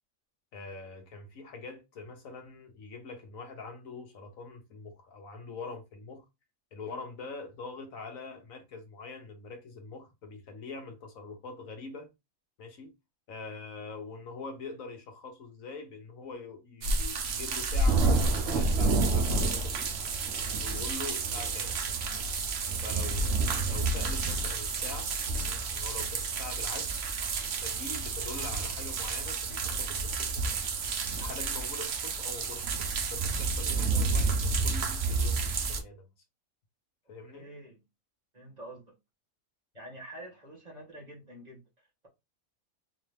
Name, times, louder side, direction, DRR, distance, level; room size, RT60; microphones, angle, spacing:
voice 1, 0.5-6.3 6.7-12.1 12.6-12.9 13.3-19.9 20.6-21.7 22.8-23.3 23.7-27.0 27.6-30.6 31.1-36.0 37.1-37.4, left 4 dB, 70° left, 1.4 m, -44 dB
sound 1, 16.8-35.8, right 3 dB, 55° right, 0.9 m, -30 dB
voice 2, 37.3-37.8 38.3-38.9 39.7-42.1, right 1 dB, 30° right, 1.5 m, -47 dB
3.9 x 2.8 x 3.3 m
omnidirectional pair, 1.5 m